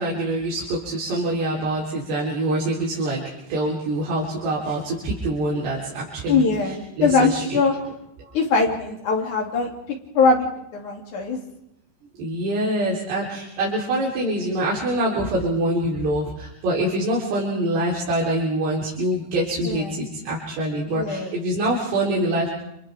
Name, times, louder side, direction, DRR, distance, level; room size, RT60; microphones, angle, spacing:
voice 1, 0.0-7.6 8.2-8.3 10.8-10.9 12.2-22.5, right 1 dB, 85° right, -6 dB, 5.7 m, -25 dB
voice 2, 6.3-7.7 8.3-9.7 10.2-11.4 19.6-20.0 20.9-21.3, left 4 dB, 50° left, 0 dB, 4.0 m, -21 dB
29.5 x 27.5 x 3.6 m, 0.81 s
omnidirectional pair, 4.7 m